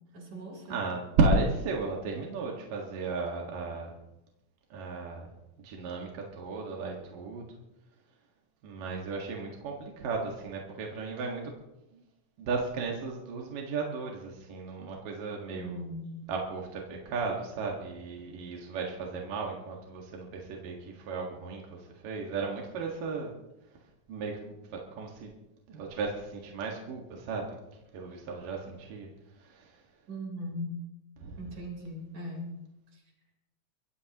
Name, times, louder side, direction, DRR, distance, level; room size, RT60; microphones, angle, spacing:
voice 1, 0.1-0.8 15.5-16.1 30.1-30.7 31.4-32.5 32.9-33.0, equal, 60° right, 0 dB, 5.2 m, -39 dB
voice 2, 0.7-3.9 4.7-5.3 5.6-7.5 8.6-11.5 11.9-12.0 12.4-15.8 16.3-23.3 24.1-25.3 25.7-27.6 27.9-29.1 29.4-29.7 31.2-31.4, right 3 dB, 75° right, 0 dB, 3.4 m, -34 dB
24.0 x 16.0 x 3.0 m, 0.95 s
omnidirectional pair, 3.8 m